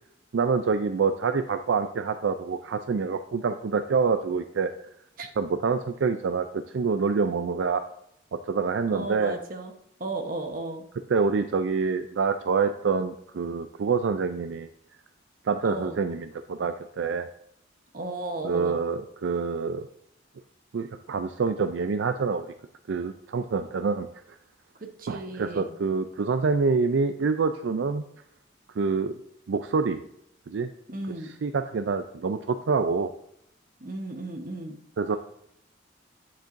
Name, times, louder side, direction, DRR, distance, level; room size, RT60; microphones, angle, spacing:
voice 1, 0.3-4.7 5.4-7.8 8.3-9.4 11.1-14.7 15.4-17.3 18.4-19.9 20.7-22.5 22.9-24.4 25.1-28.0 28.8-29.1 29.5-30.0 30.5-30.7 31.2-33.1 35.0-35.2, right 5 dB, 75° right, 9 dB, 0.4 m, -26 dB
voice 2, 8.9-9.7 10.0-10.8 15.6-16.0 17.9-18.8 25.0-25.7 30.9-31.3 33.8-34.8, right 2 dB, 45° right, 5 dB, 1.0 m, -34 dB
9.2 x 7.4 x 2.6 m, 0.75 s
head